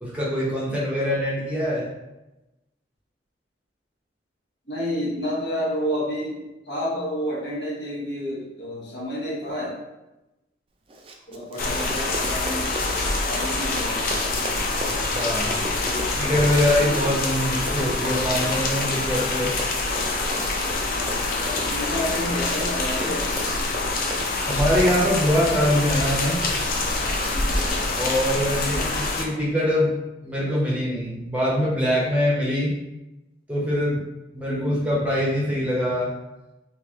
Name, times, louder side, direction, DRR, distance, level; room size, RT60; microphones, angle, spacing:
voice 1, 0.0-1.9 11.6-11.7 15.1-15.6 16.2-19.5 24.4-26.4 28.0-29.9 30.2-32.8 33.5-34.0 34.3-36.1, equal, 5° right, -6 dB, 0.8 m, -23 dB
voice 2, 4.7-9.8 11.3-14.3 15.7-16.2 16.7-17.1 20.9-23.5 28.5-28.9 34.5-34.9, equal, 65° left, -5 dB, 1.1 m, -31 dB
Run, 10.9-28.1, right 1 dB, 30° right, 0.3 m, -37 dB
sound 1, 11.6-29.2, left 2 dB, 50° left, 0.5 m, -26 dB
3.1 x 2.8 x 3.5 m, 0.99 s
head